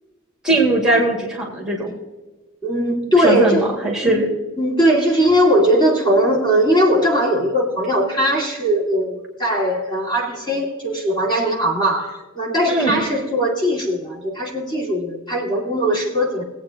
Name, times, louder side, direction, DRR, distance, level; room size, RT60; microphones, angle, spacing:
voice 1, 0.4-1.9 3.2-4.3 12.7-13.0, right 2 dB, 5° right, -2 dB, 2.0 m, -19 dB
voice 2, 2.6-3.7 4.0-4.2 4.6-16.4, equal, 20° left, -3 dB, 2.3 m, -19 dB
21.5 x 8.4 x 2.9 m, 1.2 s
head